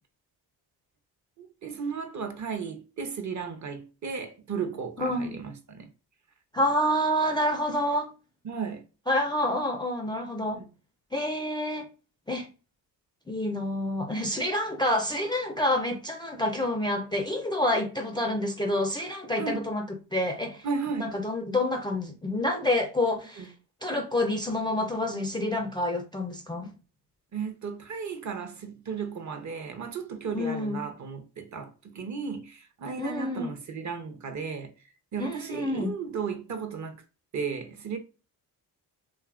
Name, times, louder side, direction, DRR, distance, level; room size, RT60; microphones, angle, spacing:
voice 1, 1.4-5.9 8.4-8.8 10.5-10.7 19.4-19.7 20.6-21.2 23.4-23.5 27.3-34.7 35.1-37.0 37.3-38.0, right 5 dB, 40° right, 0.7 m, -35 dB
voice 2, 5.0-5.4 6.5-8.1 9.1-10.6 11.1-11.9 12.3-12.5 13.3-19.8 20.1-20.7 21.0-23.5 23.8-26.7 30.3-30.8 33.0-33.5 35.2-35.9, left 1 dB, 10° left, 0.4 m, -28 dB
2.7 x 2.4 x 2.4 m
supercardioid pair, 55°, 44 cm